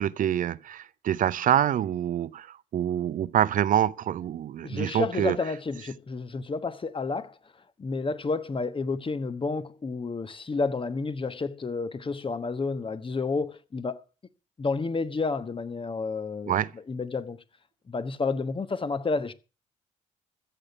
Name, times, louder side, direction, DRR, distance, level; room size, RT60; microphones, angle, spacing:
voice 1, 0.0-5.4 16.5-16.7, right 10 dB, 55° right, 0.6 m, -26 dB
voice 2, 4.6-7.4 7.8-14.0 14.6-17.4 17.9-19.3, left 4 dB, 30° left, 1.2 m, -30 dB
15.0 x 6.6 x 7.0 m
hypercardioid pair, 45°, 16 cm